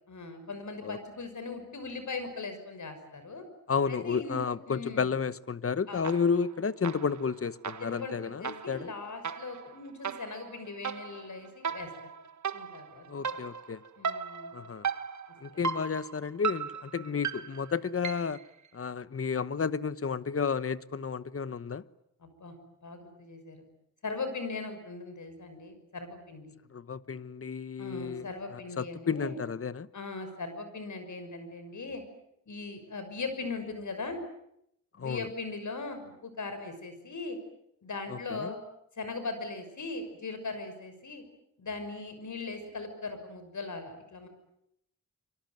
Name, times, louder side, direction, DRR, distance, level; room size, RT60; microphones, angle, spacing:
voice 1, 0.1-3.4 3.9-5.1 5.9-6.1 7.8-12.1 12.5-13.3 14.0-14.5 15.5-15.6 22.2-22.6 22.8-23.6 24.0-26.5 27.8-29.4 29.9-32.0 32.5-34.2 35.0-37.4 37.8-38.6 39.0-41.2 41.6-44.3, left 3 dB, 70° left, 6.2 m, -39 dB
voice 2, 3.7-8.9 13.1-13.8 14.5-14.9 15.4-18.4 18.7-21.8 26.7-29.9 35.0-35.3 38.1-38.5, left 6 dB, 45° left, 1.1 m, -32 dB
sound 1, 6.0-6.5 6.8-18.5, right 6 dB, 65° right, 1.4 m, -37 dB
26.5 x 24.0 x 9.3 m
wide cardioid pair, 105°, 31 cm